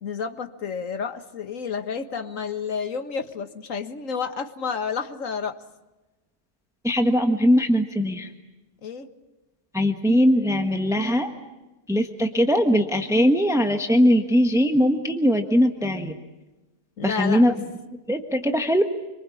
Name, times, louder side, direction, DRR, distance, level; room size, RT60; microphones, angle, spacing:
voice 1, 0.0-5.6 8.8-9.1 17.0-17.6, left 6 dB, 90° left, 9 dB, 1.9 m, -30 dB
voice 2, 6.8-8.3 9.7-11.3 11.9-16.1 17.0-17.5 18.1-18.8, equal, ahead, 6 dB, 1.4 m, -20 dB
27.0 x 24.5 x 8.5 m, 1.1 s
omnidirectional pair, 1.3 m